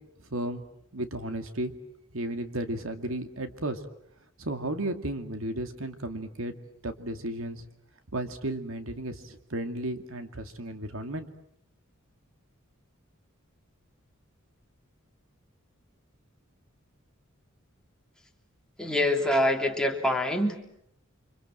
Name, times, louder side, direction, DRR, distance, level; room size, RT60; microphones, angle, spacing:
voice 1, 0.3-0.6 0.9-1.7 2.1-3.8 4.4-6.5 6.8-7.6 8.1-11.3, right 1 dB, 75° right, 7 dB, 2.2 m, -34 dB
voice 2, 18.8-20.8, left 1 dB, 5° left, 1 dB, 3.0 m, -25 dB
30.0 x 25.5 x 7.7 m, 0.72 s
head